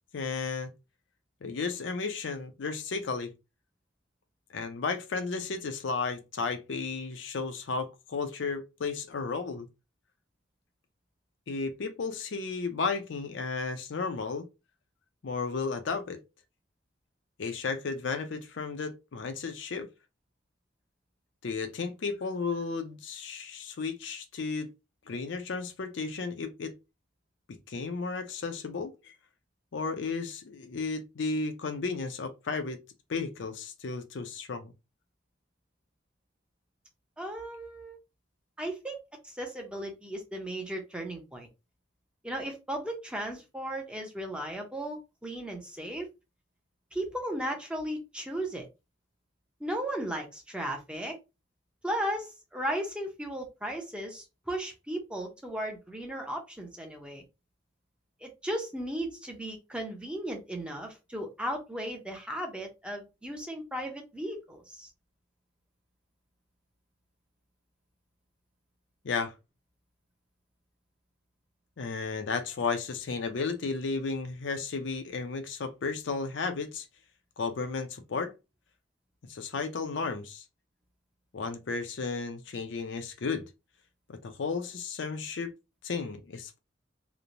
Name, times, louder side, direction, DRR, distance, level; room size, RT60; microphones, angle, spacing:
voice 1, 0.1-0.7 1.4-3.3 4.5-9.7 11.5-14.5 15.2-16.2 17.4-19.9 21.4-24.7 25.1-26.7 27.7-29.1 29.7-32.8 33.1-34.7 69.0-69.3 71.8-76.9 77.4-78.3 79.3-80.4 81.3-83.4 84.1-85.5 85.8-86.6, left 4 dB, 70° left, 0.5 m, -33 dB
voice 2, 37.2-38.0 38.6-39.0 39.2-41.5 42.2-46.1 46.9-48.7 49.6-51.2 51.8-57.2 58.2-64.9, right 1 dB, 5° right, 0.6 m, -36 dB
3.0 x 2.0 x 2.5 m
head